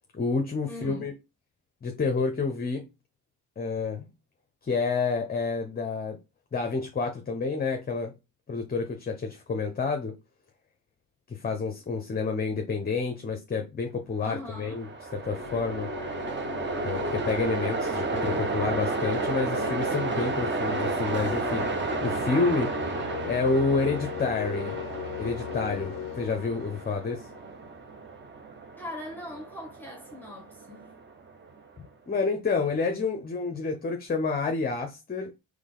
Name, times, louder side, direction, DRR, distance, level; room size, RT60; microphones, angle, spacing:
voice 1, 0.1-1.1 1.8-2.8 3.6-4.1 4.6-6.2 6.5-8.1 8.5-10.1 11.3-15.9 16.8-21.7 22.0-22.7 23.3-24.8 25.2-27.3 32.1-35.3, left 4 dB, 25° left, 0.7 m, -29 dB
voice 2, 0.7-1.1 14.2-14.8 28.8-30.9, left 1 dB, 5° left, 1.2 m, -40 dB
Train, 14.4-31.6, right 4 dB, 30° right, 0.9 m, -32 dB
sound 1, 15.2-27.9, left 12 dB, 60° left, 0.5 m, -38 dB
3.8 x 3.2 x 3.8 m
cardioid pair, 85°, 37 cm